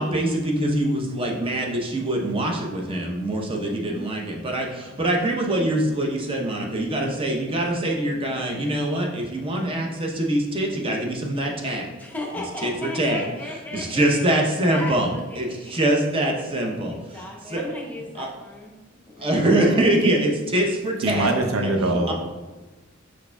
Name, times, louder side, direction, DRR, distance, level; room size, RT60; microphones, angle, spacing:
voice 1, 0.0-11.9 12.6-13.2 13.7-15.1 15.4-16.9 17.5-17.6 18.2-18.3 19.2-21.3 21.6-21.7 22.1-22.2, right 1 dB, 25° right, 0 dB, 0.7 m, -24 dB
voice 2, 12.0-14.4 14.6-15.7 16.8-18.8 19.1-19.7, left 1 dB, 10° left, -2 dB, 0.7 m, -36 dB
voice 3, 21.0-22.1, right 2 dB, 85° right, 4 dB, 0.5 m, -22 dB
4.8 x 4.4 x 2.2 m, 1.2 s
head